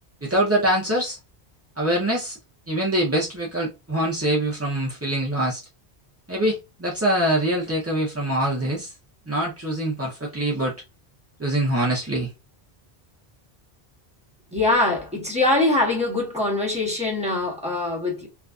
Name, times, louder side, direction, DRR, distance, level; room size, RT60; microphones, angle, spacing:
voice 1, 0.2-1.2 1.8-2.4 2.7-5.6 6.3-8.9 9.3-10.7 11.4-12.3, right 1 dB, 25° right, 0.4 m, -24 dB
voice 2, 14.5-18.3, left 2 dB, 5° right, 1.0 m, -23 dB
2.5 x 2.4 x 2.2 m
omnidirectional pair, 1.1 m